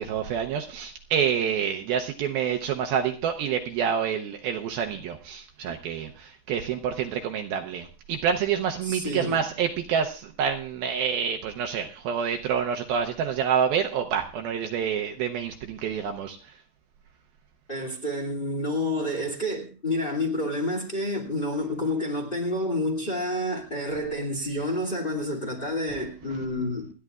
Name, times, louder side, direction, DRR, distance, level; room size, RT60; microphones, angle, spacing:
voice 1, 0.0-16.4, right 7 dB, 75° right, 2.4 m, -27 dB
voice 2, 8.8-9.4 17.7-26.9, left 1 dB, 20° left, 1.7 m, -29 dB
29.0 x 10.0 x 2.4 m
omnidirectional pair, 4.7 m